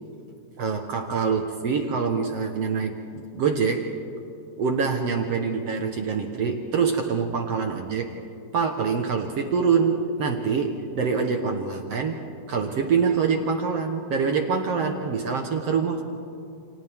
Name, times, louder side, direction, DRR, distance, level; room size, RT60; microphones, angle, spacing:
voice 1, 0.6-3.9 4.6-8.1 8.5-12.2 12.5-16.0, right 5 dB, 60° right, 3 dB, 1.7 m, -25 dB
29.5 x 29.0 x 3.6 m, 2.6 s
omnidirectional pair, 4.3 m